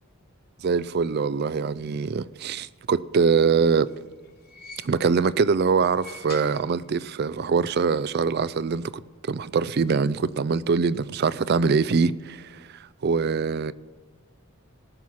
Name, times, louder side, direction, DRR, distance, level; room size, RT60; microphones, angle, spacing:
voice 1, 0.6-3.9 4.8-13.7, right 5 dB, 45° right, 0.3 m, -23 dB
sound 1, 3.4-5.3 5.8-7.2 7.5-7.6 8.7-8.8, left 4 dB, 45° left, 0.9 m, -48 dB
18.0 x 6.3 x 5.7 m
head